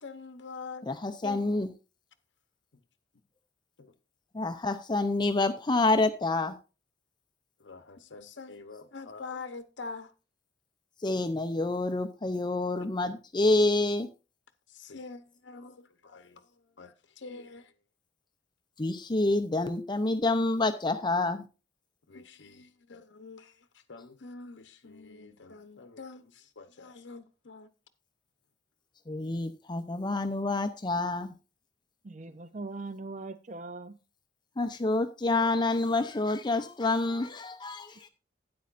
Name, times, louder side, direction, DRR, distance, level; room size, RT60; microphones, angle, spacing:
voice 1, 0.0-0.9 1.2-1.4 3.8-3.9 7.6-10.1 12.8-13.1 14.7-16.5 16.8-17.7 22.1-23.6 23.9-27.7, left 4 dB, 85° left, 0.9 m, -45 dB
voice 2, 0.9-1.7 4.3-6.5 11.0-14.1 18.8-21.4 29.1-31.3 34.6-38.1, left 2 dB, 25° left, 0.6 m, -28 dB
voice 3, 32.0-34.0, right 3 dB, 40° right, 0.5 m, -40 dB
12.5 x 9.5 x 2.5 m
head